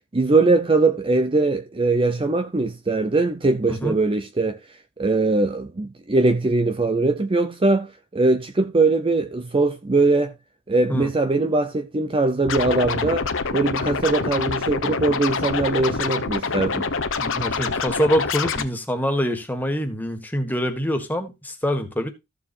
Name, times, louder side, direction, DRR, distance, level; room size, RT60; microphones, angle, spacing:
voice 1, 0.1-4.6 5.0-10.3 10.7-16.9, right 3 dB, 25° right, 0.6 m, -21 dB
Scratching (performance technique), 12.5-18.6, left 4 dB, 60° left, 1.1 m, -26 dB
voice 2, 17.2-22.1, equal, 10° left, 1.6 m, -25 dB
14.5 x 7.0 x 2.6 m
head